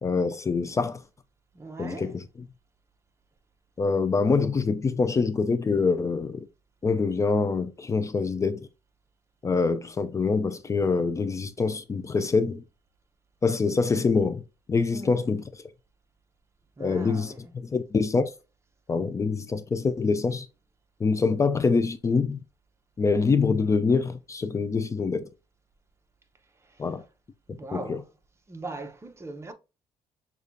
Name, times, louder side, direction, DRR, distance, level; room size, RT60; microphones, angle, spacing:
voice 1, 0.0-1.0 1.8-2.2 3.8-6.5 6.8-8.7 9.4-12.6 13.4-14.4 14.7-15.4 16.8-18.3 18.9-20.5 21.0-22.4 23.0-25.3 26.8-27.0 27.7-28.0, left 4 dB, 25° left, 0.4 m, -25 dB
voice 2, 1.5-2.1 14.9-15.2 16.8-17.5 26.6-26.9 27.5-28.1 28.5-29.5, right 2 dB, 25° right, 0.8 m, -40 dB
6.5 x 2.4 x 2.6 m
cardioid pair, 100°, 12 cm